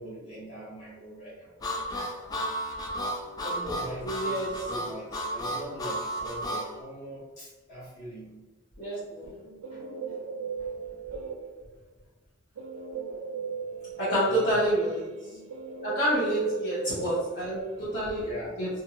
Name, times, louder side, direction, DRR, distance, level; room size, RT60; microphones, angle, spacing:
voice 1, 0.0-2.3 3.2-8.3 8.9-9.0 9.7-9.9 10.6-11.0 14.2-14.6 16.1-16.2 18.2-18.6, right 1 dB, 40° left, -9 dB, 1.3 m, -42 dB
Harmonica, 1.6-6.7, equal, 20° left, 0.3 m, -33 dB
voice 2, 4.0-4.5 8.8-9.3 14.0-15.1 15.8-18.3 18.6-18.7, right 1 dB, 55° left, -12 dB, 1.0 m, -28 dB
Guitar, 9.3-11.8 12.6-18.0, right 5 dB, 85° right, 0.3 m, -38 dB
2.7 x 2.5 x 2.7 m, 1.2 s
head